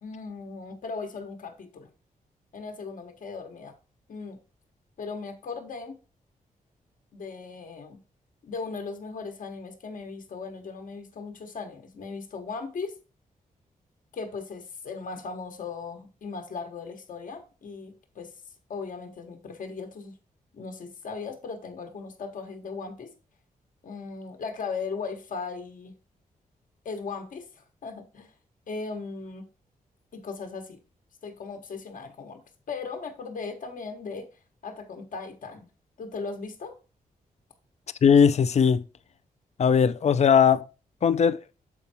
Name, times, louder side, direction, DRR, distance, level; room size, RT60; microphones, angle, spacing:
voice 1, 0.0-1.9 2.5-3.7 4.1-4.4 5.0-6.0 7.1-8.0 8.4-13.0 14.1-18.3 18.7-20.1 20.5-23.1 23.8-25.9 26.8-28.3 28.7-29.5 30.1-30.8 31.2-32.4 32.7-34.3 34.6-35.7 36.0-36.7, left 4 dB, 65° left, 1.2 m, -37 dB
voice 2, 38.0-38.8 39.6-40.7 41.0-41.4, left 7 dB, 50° left, 0.5 m, -19 dB
7.1 x 4.5 x 4.3 m
wide cardioid pair, 105°, 15 cm